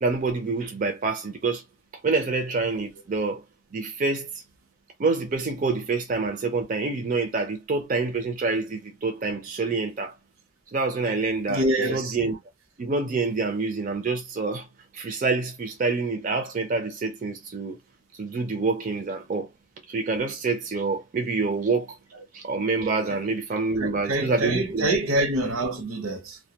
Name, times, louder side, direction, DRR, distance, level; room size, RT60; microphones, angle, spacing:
voice 1, 0.0-1.6 2.0-3.4 3.7-4.3 5.0-10.1 10.7-11.6 11.9-12.4 12.8-14.7 14.9-17.8 18.1-19.5 19.9-22.0 22.3-24.9, right 3 dB, 40° right, 0.4 m, -27 dB
voice 2, 11.5-12.2 23.1-23.2 23.8-26.4, right 1 dB, 80° right, 0.7 m, -26 dB
2.2 x 2.1 x 2.7 m
head